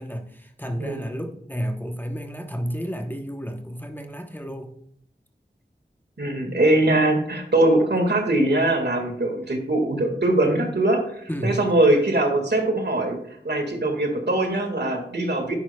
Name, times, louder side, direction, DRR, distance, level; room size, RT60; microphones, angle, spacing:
voice 1, 0.0-4.7 11.3-11.6, equal, 10° left, 4 dB, 0.9 m, -31 dB
voice 2, 6.2-13.2 13.4-15.5, right 1 dB, 65° right, 3 dB, 1.8 m, -22 dB
10.5 x 9.5 x 2.3 m, 0.69 s
wide cardioid pair, 60°, 19 cm